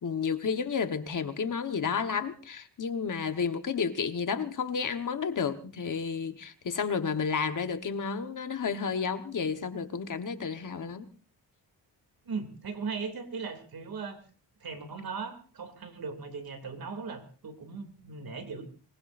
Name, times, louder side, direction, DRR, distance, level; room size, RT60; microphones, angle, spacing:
voice 1, 0.0-11.1, left 6 dB, 45° left, 8 dB, 1.3 m, -31 dB
voice 2, 12.2-14.2 14.6-18.6, right 5 dB, 55° right, 7 dB, 2.8 m, -38 dB
25.0 x 20.5 x 2.6 m, 0.37 s
wide cardioid pair, 155°, 43 cm